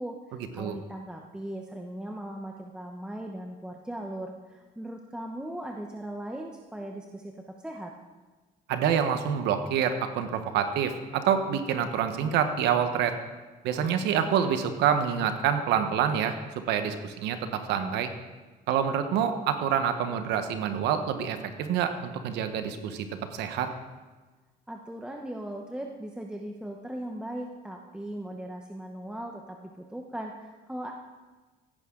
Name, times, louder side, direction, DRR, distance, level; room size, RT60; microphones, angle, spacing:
voice 1, 0.0-7.9 24.7-30.9, right 1 dB, 5° right, 1 dB, 0.9 m, -38 dB
voice 2, 8.7-13.1 13.6-16.3 16.7-18.1 18.7-23.7, right 8 dB, 85° right, 8 dB, 1.1 m, -27 dB
16.5 x 9.9 x 3.8 m, 1.3 s
cardioid pair, 110°, 17 cm